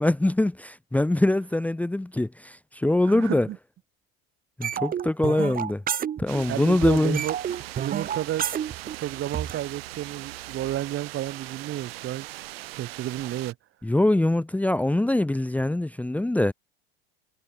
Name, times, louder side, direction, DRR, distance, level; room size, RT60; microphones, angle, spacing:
voice 1, 0.0-3.5 4.6-5.8 6.2-7.2 13.8-16.5, left 1 dB, 5° left, 1.1 m, -23 dB
voice 2, 3.1-3.6 4.8-4.9 6.5-7.4 7.8-8.5 9.0-12.3 12.7-13.6, right 13 dB, 45° right, 2.5 m, -31 dB
sound 1, 4.6-6.6 6.8-9.6, right 9 dB, 30° right, 1.2 m, -30 dB
sound 2, 6.3-13.5, right 18 dB, 80° right, 1.3 m, -40 dB
hypercardioid pair, 100°, 29 cm